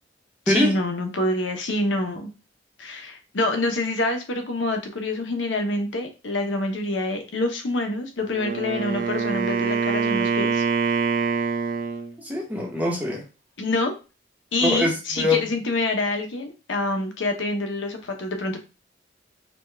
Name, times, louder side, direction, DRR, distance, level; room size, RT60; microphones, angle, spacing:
voice 1, 0.5-2.3 2.8-10.6 13.6-13.9 14.5-18.6, left 2 dB, 80° left, 5 dB, 0.8 m, -26 dB
Wind instrument woodwind instrument, 8.2-12.1, right 5 dB, 45° right, 0.6 m, -25 dB
voice 2, 12.2-13.2 14.6-15.4, left 2 dB, 10° right, -1 dB, 0.9 m, -23 dB
5.0 x 2.3 x 3.3 m, 0.31 s
head